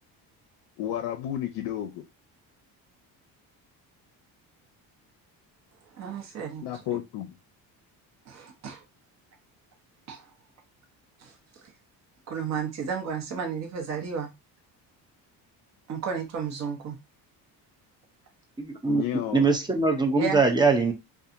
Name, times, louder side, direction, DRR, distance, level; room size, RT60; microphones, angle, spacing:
voice 1, 0.8-2.1 6.6-7.3 18.9-19.5, left 11 dB, 85° left, 0.5 m, -32 dB
voice 2, 5.9-6.8 8.3-8.8 10.1-10.3 11.2-11.4 12.3-14.3 15.9-17.0 20.2-20.4, right 6 dB, 45° right, 0.9 m, -33 dB
voice 3, 18.6-19.0 19.3-20.9, right 3 dB, 10° right, 0.4 m, -22 dB
2.7 x 2.4 x 2.5 m
cardioid pair, 125°, 39 cm